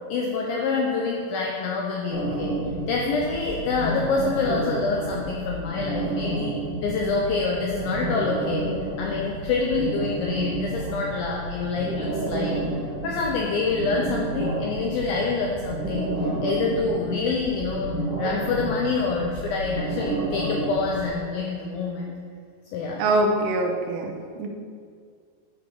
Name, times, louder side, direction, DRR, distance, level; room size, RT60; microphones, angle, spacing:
voice 1, 0.1-2.6 2.9-6.5 6.8-8.7 9.0-12.6 13.0-17.9 18.2-22.1 22.7-23.0, left 4 dB, 85° left, -1 dB, 2.0 m, -26 dB
sound 1, 2.1-21.1, right 2 dB, 50° right, 1.9 m, -30 dB
voice 2, 23.0-24.5, right 2 dB, 80° right, 2 dB, 2.7 m, -24 dB
8.9 x 4.8 x 5.2 m, 2.1 s
omnidirectional pair, 4.9 m